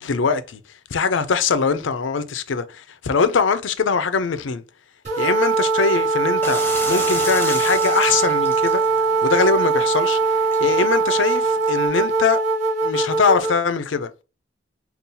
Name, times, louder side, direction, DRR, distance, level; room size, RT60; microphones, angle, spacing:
voice 1, 0.0-4.6 5.2-8.8 9.2-12.4 12.8-14.2, left 5 dB, 80° left, 0.5 m, -22 dB
sound 1, 5.0-13.5, right 4 dB, 40° right, 2.1 m, -21 dB
sound 2, 6.4-11.9, left 2 dB, 10° left, 0.9 m, -33 dB
5.3 x 2.4 x 2.7 m
head